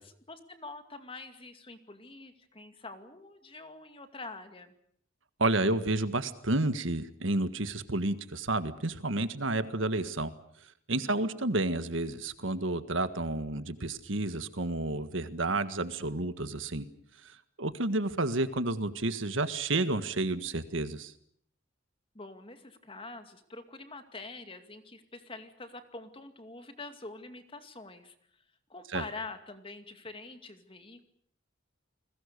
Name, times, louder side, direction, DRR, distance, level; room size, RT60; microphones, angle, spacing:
voice 1, 0.0-4.7 10.9-11.3 22.1-28.1 28.7-31.1, left 3 dB, 25° left, 8 dB, 2.3 m, -45 dB
voice 2, 5.4-10.3 10.9-16.8 17.2-17.3 17.6-21.1 28.9-29.0, right 2 dB, 70° right, 11 dB, 1.7 m, -30 dB
30.0 x 21.0 x 6.9 m, 0.65 s
head